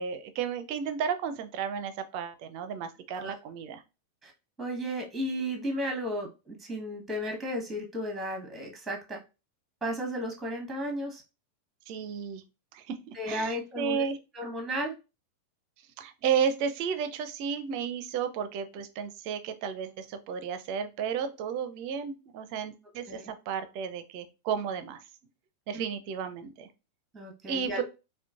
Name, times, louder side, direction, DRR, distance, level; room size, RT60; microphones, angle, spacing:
voice 1, 0.0-3.8 11.9-12.4 12.7-14.2 16.0-25.0 25.7-26.7 27.5-27.8, right 7 dB, 45° right, 9 dB, 0.5 m, -33 dB
voice 2, 4.6-9.2 9.8-11.2 13.1-14.1 14.3-14.9 23.1-23.3 25.7-25.8 27.1-27.8, equal, 10° right, 2 dB, 1.2 m, -34 dB
4.4 x 2.2 x 2.4 m, 0.28 s
figure-of-eight pair, 90°, 0 cm